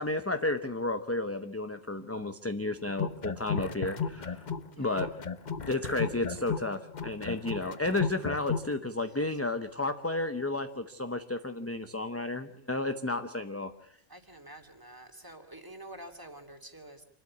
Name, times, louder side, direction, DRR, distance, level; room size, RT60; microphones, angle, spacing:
voice 1, 0.0-4.4 4.8-5.2 5.7-13.7, left 2 dB, 15° left, 9 dB, 0.7 m, -32 dB
sound 1, 2.9-4.7 5.0-8.7, left 6 dB, 45° left, 1.0 m, -34 dB
voice 2, 4.7-5.1 9.0-9.2 14.1-17.0, right 1 dB, 20° right, 5 dB, 2.3 m, -48 dB
27.0 x 12.5 x 8.4 m, 0.71 s
omnidirectional pair, 1.1 m